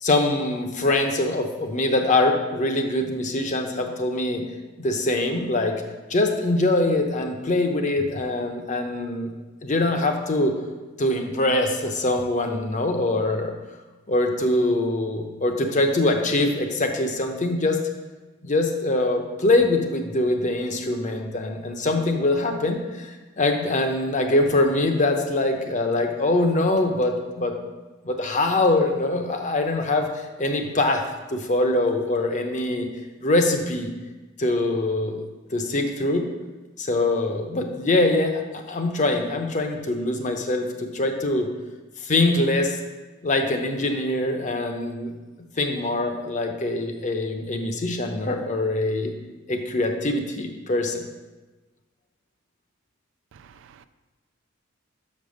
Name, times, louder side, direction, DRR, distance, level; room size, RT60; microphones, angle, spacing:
voice 1, 0.0-4.4 4.8-5.8 6.1-9.3 9.6-10.6 11.0-13.5 14.1-17.8 18.4-27.6 28.0-31.0 31.3-32.9 33.2-33.9 34.4-35.2 35.5-36.3 36.8-41.5 42.0-42.8 43.2-45.1 45.6-49.1 49.5-51.0, left 2 dB, 35° left, 4 dB, 0.8 m, -23 dB
voice 2, 53.3-53.9, right 7 dB, 60° right, 12 dB, 0.3 m, -51 dB
6.2 x 5.3 x 6.4 m, 1.2 s
head